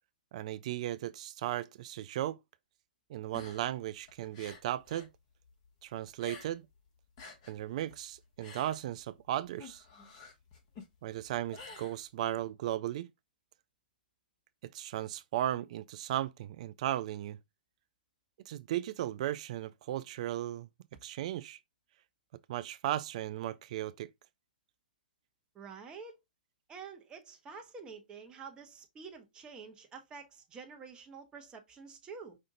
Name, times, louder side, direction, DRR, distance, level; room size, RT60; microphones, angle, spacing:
voice 1, 0.3-2.4 3.1-5.1 5.8-6.7 7.5-9.8 11.0-13.1 14.7-17.4 18.5-20.7 21.0-21.6 22.5-24.1, right 13 dB, 45° right, 0.3 m, -36 dB
sound 1, 3.2-5.2 5.4-6.8 7.0-12.5, left 4 dB, 40° left, 1.5 m, -51 dB
voice 2, 25.5-26.2 26.7-32.4, right 5 dB, 20° right, 1.1 m, -48 dB
5.3 x 2.5 x 3.8 m
figure-of-eight pair, 120°, 5 cm